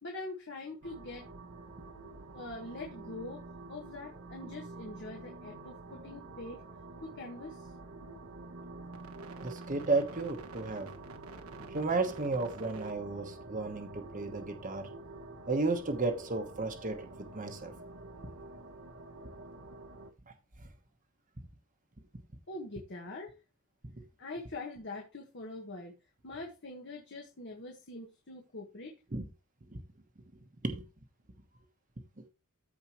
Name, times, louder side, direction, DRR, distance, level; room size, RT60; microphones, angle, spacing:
voice 1, 0.0-1.2 2.3-3.4 3.7-6.6 7.0-7.7 22.5-23.3 24.2-25.9 26.2-29.0, left 2 dB, 55° left, 1.5 m, -43 dB
sound 1, 0.8-20.1, right 2 dB, 75° right, 1.2 m, -48 dB
voice 2, 9.4-10.9 11.7-14.9 15.5-17.7 29.1-29.2 29.7-29.8 30.6-30.8, right 3 dB, 35° right, 1.2 m, -33 dB
14.5 x 4.8 x 3.1 m
head